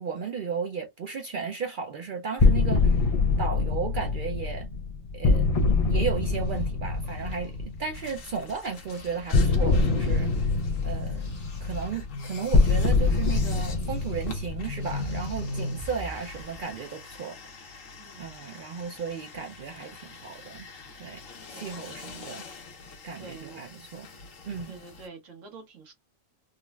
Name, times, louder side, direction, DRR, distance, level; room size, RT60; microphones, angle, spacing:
voice 1, 0.0-2.9 3.4-4.7 5.1-5.5 5.9-10.5 10.8-11.3 11.6-17.8 18.2-20.7 21.0-21.2 21.5-22.4 23.0-24.1 24.4-24.8, right 6 dB, 60° right, 0.5 m, -34 dB
sound 1, 2.4-8.1 9.3-15.6, left 3 dB, 65° left, 0.3 m, -24 dB
sound 2, 6.2-8.5 8.8-16.7, left 1 dB, 45° left, 0.9 m, -39 dB
sound 3, 7.9-25.1, left 4 dB, 85° left, 1.2 m, -47 dB
voice 2, 17.9-18.6 21.5-21.7 23.2-23.6 24.7-25.9, right 4 dB, 80° right, 1.5 m, -47 dB
3.7 x 2.1 x 2.2 m
omnidirectional pair, 1.3 m